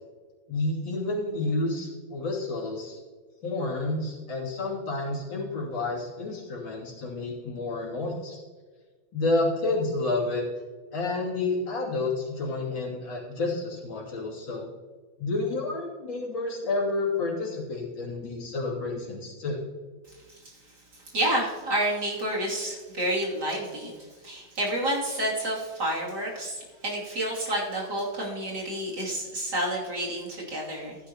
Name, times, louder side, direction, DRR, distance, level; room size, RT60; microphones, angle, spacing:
voice 1, 0.5-3.0 3.4-8.4 9.1-10.4 10.9-14.6 15.2-19.6, left 2 dB, 65° left, -4 dB, 3.4 m, -30 dB
voice 2, 20.9-23.9 24.2-31.0, right 1 dB, 55° right, -4 dB, 3.2 m, -29 dB
15.0 x 9.4 x 2.9 m, 1.4 s
omnidirectional pair, 2.2 m